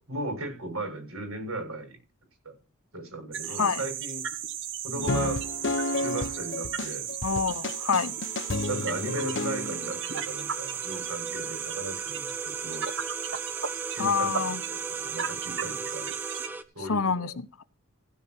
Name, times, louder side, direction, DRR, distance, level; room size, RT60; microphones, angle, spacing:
voice 1, 0.0-2.0 2.4-2.5 2.9-4.2 4.8-5.4 6.0-7.1 8.6-12.8 13.9-16.1 16.7-17.4, right 2 dB, 85° right, 6.6 m, -36 dB
sound 1, 3.3-16.5, right 9 dB, 60° right, 1.2 m, -35 dB
sound 2, 5.0-9.9, left 2 dB, 55° left, 0.8 m, -31 dB
voice 2, 7.2-8.2 14.0-14.6 16.9-17.6, left 5 dB, 85° left, 0.9 m, -27 dB
sound 3, 7.5-16.6, right 2 dB, 10° right, 1.0 m, -40 dB
16.0 x 5.8 x 6.0 m
head